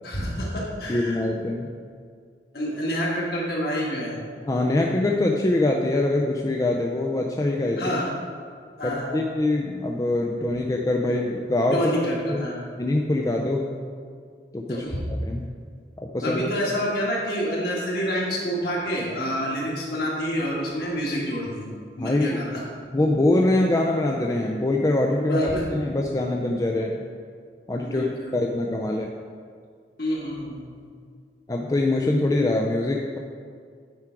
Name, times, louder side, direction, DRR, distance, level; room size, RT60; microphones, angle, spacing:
voice 1, 0.0-1.2 2.5-4.2 7.8-8.1 8.8-9.3 11.7-12.7 14.7-15.0 16.2-22.6 25.2-25.6 27.8-28.4 30.0-30.9, equal, 55° left, -4 dB, 1.9 m, -28 dB
voice 2, 0.9-1.7 4.5-8.0 8.8-11.9 12.3-12.5 12.8-13.7 14.5-14.9 15.2-15.4 16.0-16.4 22.0-22.4 22.9-25.4 25.7-27.1 27.7-29.1 31.5-33.2, left 2 dB, 20° left, 0 dB, 0.4 m, -24 dB
9.2 x 4.9 x 4.6 m, 2.1 s
head